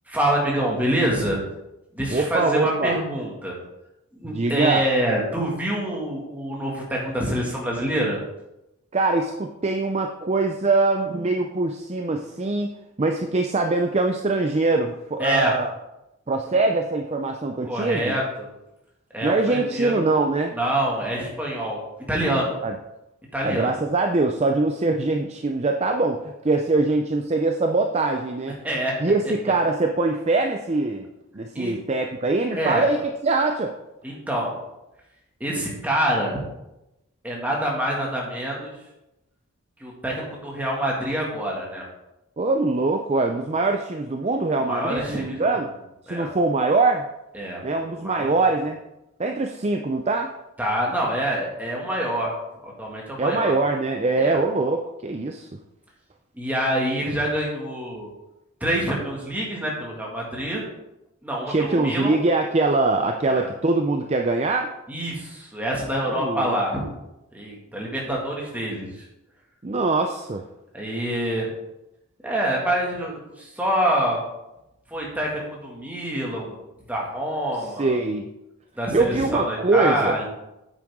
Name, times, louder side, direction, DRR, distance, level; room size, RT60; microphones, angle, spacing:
voice 1, 0.1-1.4 1.9-3.6 4.1-8.2 15.2-15.5 17.6-18.5 19.1-20.0 20.5-21.8 22.1-22.6 23.3-23.7 28.6-29.0 31.5-31.7 32.5-32.9 34.0-34.6 35.4-36.4 37.2-38.7 39.8-41.8 44.6-45.6 46.1-46.3 47.3-47.6 48.0-48.4 50.6-52.3 52.6-53.5 54.2-54.4 56.3-58.1 58.6-60.6 61.2-62.2 63.2-63.5 64.9-66.8 67.3-69.0 70.7-71.5 72.2-74.2 74.9-76.6 76.9-78.0 78.8-80.2, right 1 dB, 5° right, -3 dB, 2.0 m, -26 dB
voice 2, 2.1-3.0 4.2-4.8 8.9-12.7 13.0-15.7 16.3-18.1 19.2-20.5 22.6-22.7 23.4-28.6 29.0-31.1 31.3-33.7 42.4-45.7 46.1-47.1 47.6-48.8 49.2-50.3 53.2-55.5 61.5-64.7 66.1-66.6 69.6-70.4 77.8-78.3 78.9-80.2, right 3 dB, 30° right, 4 dB, 0.5 m, -23 dB
9.2 x 7.6 x 3.7 m, 0.92 s
head